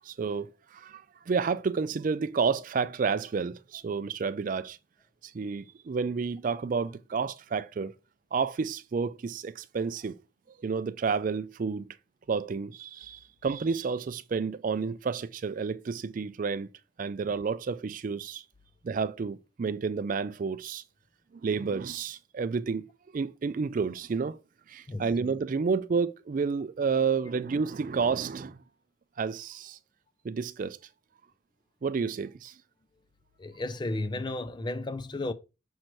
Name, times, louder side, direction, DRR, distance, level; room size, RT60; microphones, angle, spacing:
voice 1, 0.0-4.8 5.2-7.9 8.3-10.2 10.6-12.0 12.3-16.7 17.0-18.4 18.8-20.8 21.3-22.9 23.1-24.4 24.7-28.6 29.2-29.8 30.2-30.8 31.8-32.6, right 5 dB, 40° right, 0.3 m, -30 dB
voice 2, 33.4-35.3, left 2 dB, 20° left, 0.4 m, -33 dB
6.4 x 5.9 x 3.0 m
head